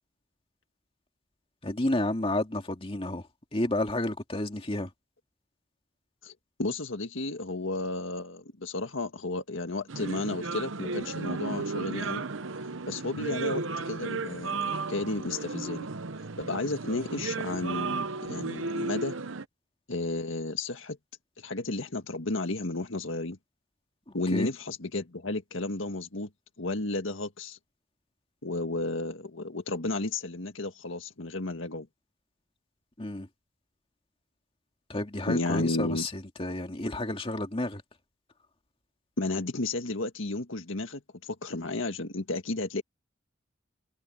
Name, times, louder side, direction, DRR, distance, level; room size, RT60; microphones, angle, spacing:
voice 1, 1.6-4.9 24.1-24.5 33.0-33.3 34.9-37.8, left 1 dB, 30° left, 2.3 m, -31 dB
voice 2, 6.6-12.3 12.9-15.9 16.4-19.2 19.9-21.0 21.4-23.4 24.1-26.3 26.6-27.6 28.4-31.9 35.3-36.1 39.2-42.8, left 2 dB, 80° left, 1.8 m, -33 dB
sound 1, 9.9-19.4, right 4 dB, 80° right, 0.9 m, -34 dB
head